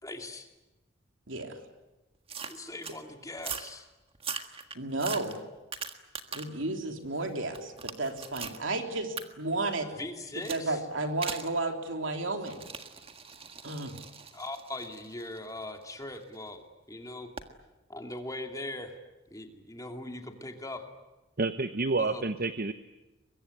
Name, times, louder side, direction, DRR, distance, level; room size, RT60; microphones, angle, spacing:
voice 1, 0.0-0.5 2.5-3.9 10.0-10.8 14.3-17.3 17.9-19.0 19.3-20.8 22.0-22.2, left 2 dB, 15° left, 4 dB, 2.6 m, -40 dB
voice 2, 1.3-1.6 4.7-5.4 6.3-9.9 10.5-12.6 13.6-14.0, right 2 dB, 70° right, 4 dB, 3.4 m, -32 dB
sound 1, 2.3-3.0 3.4-3.7 4.1-6.6 7.0-8.6 9.2-9.3 10.4-10.7 11.2-11.5 12.4-16.4 17.4-17.5, right 6 dB, 30° right, 1.7 m, -40 dB
voice 3, 21.4-22.7, right 3 dB, 50° right, 11 dB, 0.8 m, -29 dB
23.5 x 22.5 x 9.9 m, 1.1 s
head